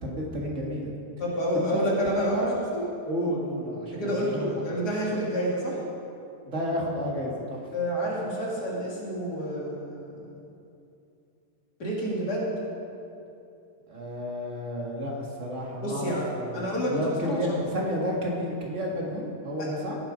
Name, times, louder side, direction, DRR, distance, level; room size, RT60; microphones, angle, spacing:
voice 1, 0.0-0.9 1.5-2.6 3.1-4.5 6.4-7.7 13.9-20.0, equal, 45° right, -2 dB, 2.0 m, -31 dB
voice 2, 1.2-2.4 2.7-2.8 3.9-5.8 7.7-10.1 11.8-12.5 15.8-16.3 16.5-17.6, equal, 75° left, -4 dB, 2.8 m, -29 dB
17.0 x 7.4 x 5.1 m, 2.7 s
omnidirectional pair, 1.7 m